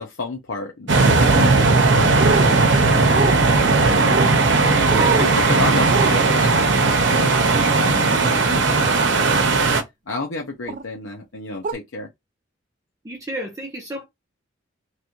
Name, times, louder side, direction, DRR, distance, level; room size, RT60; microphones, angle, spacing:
voice 1, 0.0-4.3 4.8-7.3 7.8-9.7 10.1-12.1, left 2 dB, 80° left, 0.8 m, -31 dB
sound 1, 0.9-9.8, right 3 dB, 65° right, 0.8 m, -17 dB
sound 2, 2.2-2.5 3.1-3.4 4.1-4.3 4.9-5.3 5.9-6.1 8.1-8.3 9.1-9.4 10.7-10.8 11.6-11.7, right 4 dB, 40° right, 0.3 m, -24 dB
voice 2, 5.0-5.3 13.0-14.0, right 1 dB, 15° right, 0.7 m, -32 dB
3.2 x 2.6 x 4.3 m
head